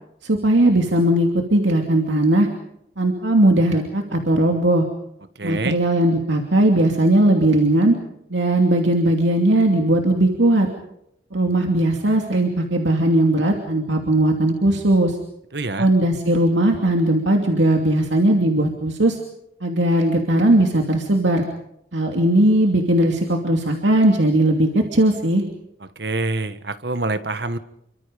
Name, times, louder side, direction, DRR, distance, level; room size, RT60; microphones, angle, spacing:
voice 1, 0.2-2.5 3.0-4.9 5.4-8.0 8.3-10.7 11.3-15.2 15.8-19.2 19.6-21.4 21.9-25.4, right 1 dB, 85° right, 2 dB, 2.7 m, -18 dB
voice 2, 5.4-5.8 15.5-15.9 26.0-27.6, right 2 dB, 65° right, 12 dB, 1.5 m, -26 dB
29.0 x 24.5 x 5.2 m, 0.77 s
head